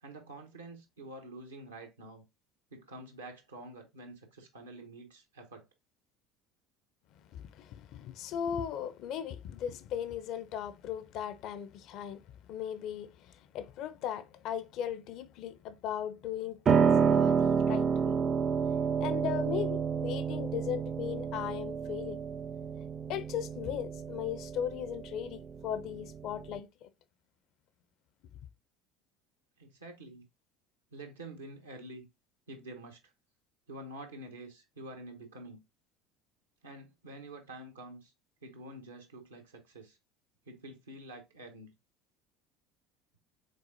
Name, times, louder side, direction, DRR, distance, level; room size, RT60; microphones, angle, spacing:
voice 1, 0.0-2.2 2.7-5.7 29.6-30.2 30.9-32.1 32.5-33.0 33.7-35.6 36.6-38.1 38.4-40.0 40.5-41.7, right 1 dB, 80° right, 1.0 m, -47 dB
voice 2, 7.2-18.2 19.0-22.2 23.1-26.9, left 9 dB, 50° left, 0.5 m, -38 dB
Piano, 16.7-26.6, right 6 dB, 35° right, 0.4 m, -29 dB
5.3 x 3.8 x 2.6 m
figure-of-eight pair, 65°, 0 cm